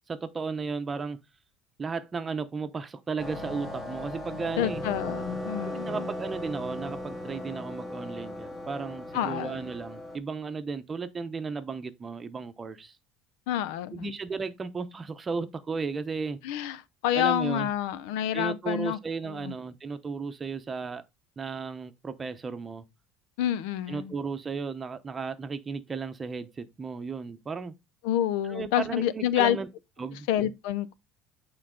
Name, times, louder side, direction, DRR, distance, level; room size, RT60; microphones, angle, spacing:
voice 1, 0.1-1.2 1.8-4.8 5.6-13.0 13.9-16.4 17.1-17.7 18.3-21.0 21.4-22.8 23.9-27.7 28.5-29.7 30.0-30.3, right 4 dB, 25° right, 0.8 m, -34 dB
sound 1, 3.2-10.2, left 1 dB, 25° left, 2.3 m, -37 dB
voice 2, 4.6-6.1 9.1-9.7 13.5-14.1 16.4-19.0 19.3-19.5 23.4-24.1 28.0-29.6 30.3-31.0, left 11 dB, 85° left, 0.6 m, -28 dB
8.7 x 4.0 x 3.8 m
cardioid pair, 125°, 0 cm